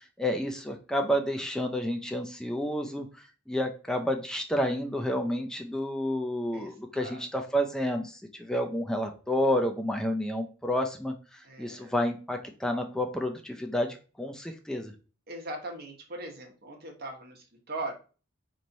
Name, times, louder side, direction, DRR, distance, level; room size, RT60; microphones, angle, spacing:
voice 1, 0.2-3.1 3.5-11.1 11.6-14.9, equal, 5° left, 3 dB, 0.3 m, -30 dB
voice 2, 6.5-7.2 11.4-11.9 15.3-17.9, right 2 dB, 50° right, 2 dB, 0.9 m, -40 dB
4.1 x 3.0 x 2.6 m, 0.35 s
head